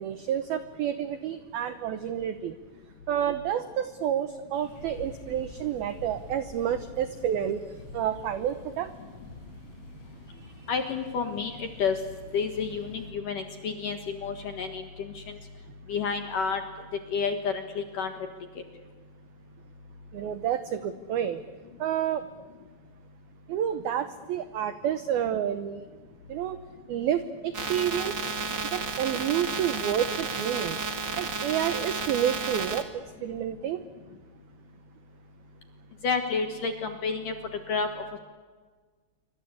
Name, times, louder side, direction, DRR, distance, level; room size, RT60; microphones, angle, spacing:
voice 1, 0.0-2.6 3.1-7.6 7.9-8.9 10.6-10.7 20.1-21.4 21.8-22.3 23.5-25.9 26.3-26.6 26.9-28.3 28.6-30.8 31.2-33.8, right 10 dB, 80° right, 11 dB, 2.1 m, -29 dB
sound 1, 4.5-13.1, left 2 dB, 30° left, 6.8 m, -47 dB
voice 2, 10.7-12.0 12.3-15.4 15.9-16.6 17.1-18.1 36.0-37.3 37.7-37.9, left 5 dB, 60° left, 6 dB, 2.3 m, -30 dB
sound 2, 27.5-32.8, right 4 dB, 50° right, 1.3 m, -32 dB
27.5 x 24.5 x 8.3 m, 1.5 s
omnidirectional pair, 5.7 m